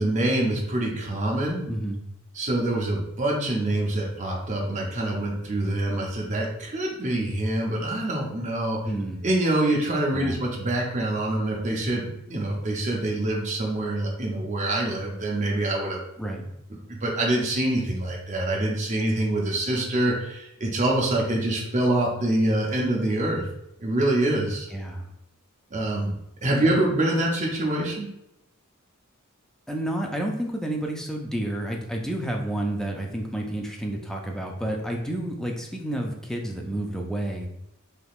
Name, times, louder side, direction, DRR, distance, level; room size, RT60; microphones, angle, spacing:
voice 1, 0.0-1.6 2.3-8.8 9.2-16.0 16.9-23.4 23.8-24.7 25.7-26.1 26.4-28.1, right 1 dB, 35° right, -2 dB, 0.6 m, -25 dB
voice 2, 1.7-2.0 8.8-9.2 10.1-10.4 16.2-16.4 24.7-25.1 26.6-26.7 29.7-37.5, right 1 dB, ahead, 1 dB, 0.3 m, -30 dB
3.5 x 2.9 x 2.3 m, 0.79 s
head